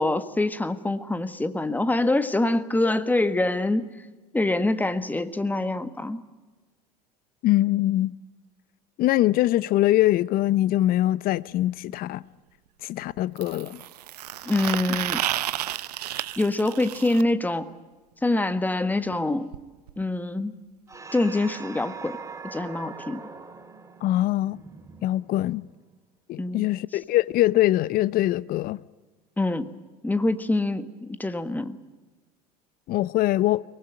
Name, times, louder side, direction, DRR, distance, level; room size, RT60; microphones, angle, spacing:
voice 1, 0.0-3.9 4.3-6.2 14.4-15.2 16.4-17.7 18.2-19.5 20.0-20.5 21.1-22.2 22.4-23.2 26.4-26.7 29.4-29.7 30.0-31.8, left 2 dB, 10° left, 1.6 m, -25 dB
voice 2, 7.4-8.1 9.0-12.2 12.8-13.8 24.0-24.6 25.0-25.6 26.3-28.8 32.9-33.6, left 15 dB, 45° left, 0.8 m, -23 dB
sound 1, 11.4-11.5 13.4-17.2 19.1-19.2 19.5-19.6 19.9-20.0 20.9-21.0, right 13 dB, 75° right, 0.8 m, -31 dB
sound 2, 20.9-25.7, right 5 dB, 15° right, 2.6 m, -42 dB
23.5 x 19.5 x 9.0 m
hypercardioid pair, 75°, 20 cm